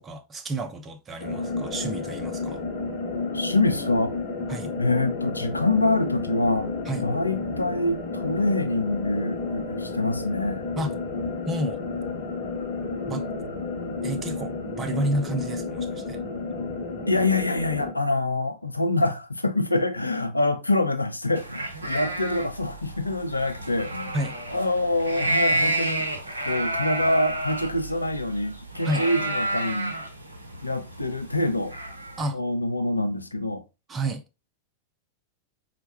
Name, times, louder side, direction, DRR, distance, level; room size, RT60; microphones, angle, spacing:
voice 1, 0.0-2.6 4.5-4.7 6.9-7.1 10.8-10.9 11.5-11.8 13.1-13.3 14.0-16.2 24.1-24.4 28.8-29.1 32.2-32.4 33.9-34.2, right 1 dB, 20° right, 0.6 m, -30 dB
sound 1, 1.2-17.9, left 3 dB, 50° left, 0.8 m, -31 dB
voice 2, 3.3-4.1 4.8-6.7 7.0-10.7 17.1-24.2 24.5-26.0 26.5-30.0 30.6-31.7 32.3-33.6, left 2 dB, 85° left, 0.4 m, -25 dB
sound 2, 21.4-32.3, right 2 dB, 80° right, 0.6 m, -30 dB
4.3 x 2.1 x 2.9 m
figure-of-eight pair, 90°, 0 cm